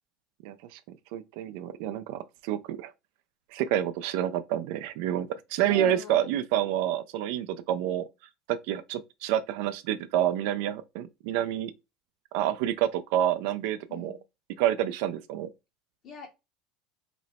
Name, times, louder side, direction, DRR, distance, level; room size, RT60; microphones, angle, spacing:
voice 1, 0.4-0.8 1.1-2.9 3.5-8.0 8.5-11.7 12.3-14.2 14.6-15.5, right 11 dB, 75° right, 0.3 m, -28 dB
voice 2, 5.7-6.3 13.9-14.2 16.0-16.3, left 4 dB, 45° left, 0.7 m, -40 dB
2.9 x 2.0 x 4.0 m
supercardioid pair, 120°, 0 cm